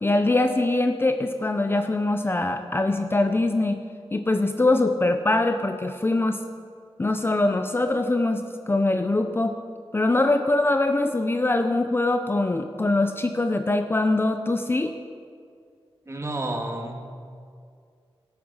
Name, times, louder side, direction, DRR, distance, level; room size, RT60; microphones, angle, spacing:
voice 1, 0.0-3.8 4.1-6.4 7.0-9.6 9.9-14.9, left 2 dB, 25° left, 7 dB, 0.7 m, -23 dB
voice 2, 16.1-17.0, right 1 dB, 30° right, 3 dB, 2.0 m, -30 dB
16.5 x 13.0 x 5.6 m, 2.2 s
wide cardioid pair, 115°, 10 cm